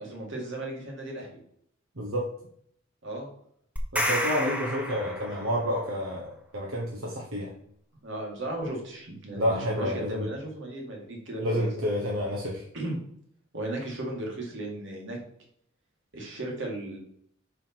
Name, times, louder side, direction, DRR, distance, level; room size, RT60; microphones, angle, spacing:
voice 1, 0.0-1.4 3.0-3.3 8.0-11.9 12.7-13.0 13.5-15.2 16.1-17.0, right 1 dB, 65° right, -1 dB, 2.1 m, -35 dB
voice 2, 2.0-2.3 3.9-7.5 9.3-10.3 11.4-12.6, equal, 85° right, -2 dB, 1.2 m, -29 dB
sound 1, 3.8-5.7, equal, 10° right, 0.9 m, -30 dB
5.5 x 4.9 x 4.5 m, 0.67 s
head